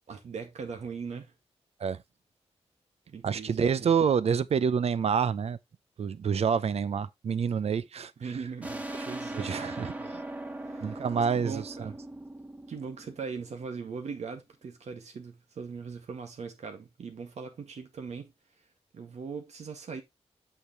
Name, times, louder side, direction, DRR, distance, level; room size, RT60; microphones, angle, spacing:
voice 1, 0.1-1.3 3.1-3.6 8.2-10.1 10.6-11.9 12.7-18.3 18.9-20.0, right 5 dB, 85° right, 1.9 m, -40 dB
voice 2, 3.2-5.6 6.0-8.1 9.4-9.9 10.8-11.9, right 6 dB, 65° right, 0.6 m, -27 dB
sound 1, 8.6-13.9, right 1 dB, 15° right, 1.2 m, -40 dB
8.7 x 6.3 x 3.0 m
wide cardioid pair, 110°, 11 cm